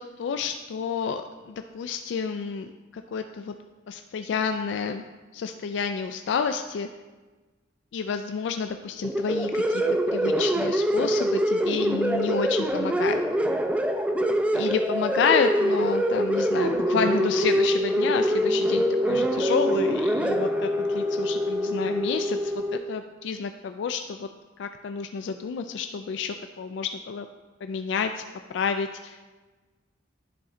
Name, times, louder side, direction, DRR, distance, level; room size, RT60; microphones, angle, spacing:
voice 1, 0.0-3.5 3.9-5.0 5.3-6.9 7.9-9.8 10.1-13.2 14.5-24.3 24.6-27.3 27.6-28.1 28.5-29.2, left 6 dB, 65° left, 7 dB, 0.3 m, -29 dB
sound 1, 9.0-22.8, equal, 5° right, 0.4 m, -24 dB
10.0 x 3.7 x 4.2 m, 1.2 s
head